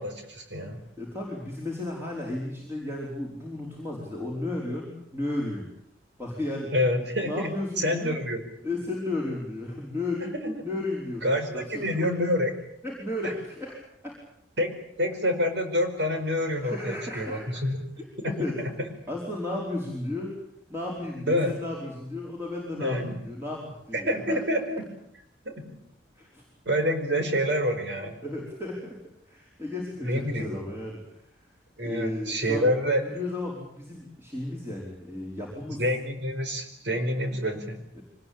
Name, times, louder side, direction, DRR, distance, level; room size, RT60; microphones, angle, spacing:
voice 1, 0.0-0.8 6.7-8.4 10.3-10.5 11.2-12.5 13.2-13.3 14.6-14.7 15.0-17.8 18.2-18.3 21.3-21.5 22.8-23.2 23.9-24.8 25.4-25.8 26.6-28.2 30.0-30.6 31.8-33.0 35.8-37.8, equal, 70° right, 5 dB, 4.9 m, -27 dB
voice 2, 1.0-5.7 6.2-6.7 7.2-8.2 8.6-12.1 12.8-13.7 14.0-14.1 16.5-17.6 18.2-18.6 19.1-20.3 20.7-24.4 26.2-26.4 28.2-29.0 29.2-31.2 31.8-32.7 33.0-35.8 37.9-38.0, left 2 dB, 15° right, -3 dB, 4.9 m, -34 dB
25.0 x 20.0 x 8.8 m, 0.75 s
head